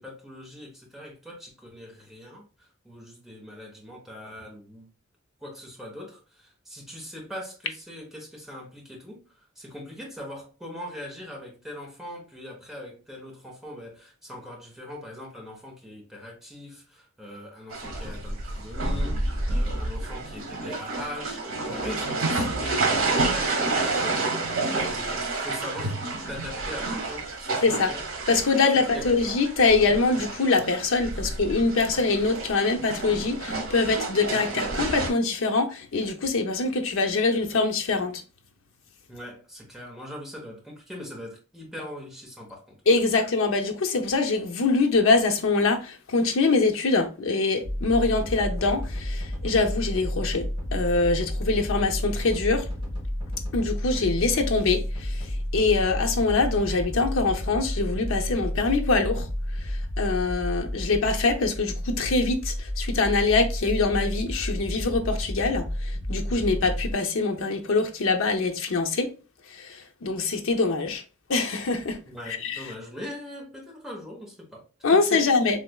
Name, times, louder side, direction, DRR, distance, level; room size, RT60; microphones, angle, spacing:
voice 1, 0.0-4.9 5.4-26.0 26.3-28.2 28.7-29.2 31.1-31.2 39.1-42.8 72.1-74.6 74.9-75.3, left 1 dB, ahead, 1.0 m, -41 dB
sound 1, 17.7-35.1, right 2 dB, 80° right, 1.0 m, -29 dB
voice 2, 27.6-27.9 28.3-38.2 42.9-50.4 50.7-52.7 53.5-55.2 55.5-59.3 60.0-65.7 66.1-69.1 69.5-71.0 71.3-72.0 72.4-72.6 74.8-75.6, left 3 dB, 70° left, 0.6 m, -24 dB
sound 2, 47.6-66.9, equal, 25° right, 1.4 m, -31 dB
3.3 x 3.1 x 2.3 m
head